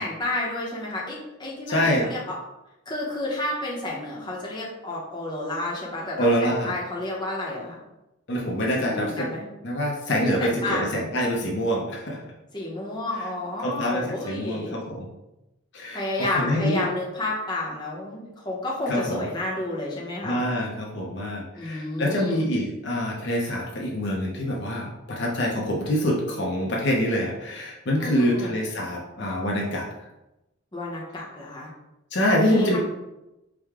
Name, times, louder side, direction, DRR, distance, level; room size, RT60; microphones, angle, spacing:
voice 1, 0.0-2.2 2.9-7.8 8.9-9.5 10.1-10.9 12.5-14.8 15.9-20.4 21.6-22.4 28.0-28.5 30.7-31.7 32.5-32.8, left 2 dB, 20° left, -4 dB, 0.8 m, -31 dB
voice 2, 1.7-2.1 6.2-6.7 8.3-9.3 9.6-12.3 13.2-13.3 13.6-15.1 15.7-16.9 18.9-19.3 20.2-29.9 32.1-32.8, equal, 55° left, -2 dB, 0.7 m, -25 dB
4.8 x 2.3 x 3.5 m, 0.94 s
head